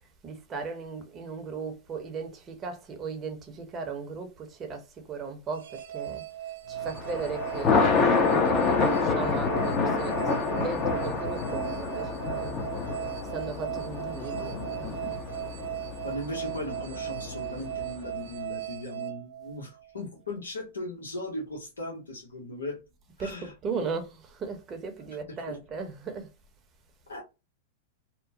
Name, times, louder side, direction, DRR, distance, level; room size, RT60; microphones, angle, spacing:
voice 1, 0.2-6.2 6.7-12.5 13.2-15.2 23.2-24.0 24.4-26.3, right 5 dB, 30° right, 0.7 m, -37 dB
sound 1, 5.5-19.9, right 13 dB, 75° right, 0.4 m, -37 dB
Thunder, 6.8-18.1, left 4 dB, 35° left, 0.7 m, -28 dB
voice 2, 16.0-22.8 23.2-23.9 25.3-25.6 27.1-27.2, left 1 dB, 90° left, 0.8 m, -38 dB
3.0 x 2.0 x 2.6 m
hypercardioid pair, 110°, 0 cm